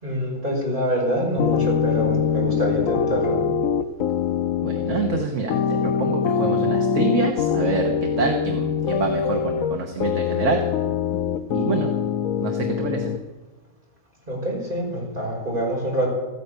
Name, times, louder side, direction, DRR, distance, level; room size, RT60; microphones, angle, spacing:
voice 1, 0.0-3.4 14.3-16.1, equal, 40° right, -4 dB, 6.0 m, -25 dB
sound 1, 1.4-13.2, left 7 dB, 80° left, 1.1 m, -23 dB
voice 2, 4.6-5.5 5.8-10.6 11.5-11.9 12.4-13.1, right 5 dB, 65° right, 3 dB, 1.6 m, -26 dB
14.5 x 10.0 x 8.2 m, 1.2 s
omnidirectional pair, 1.4 m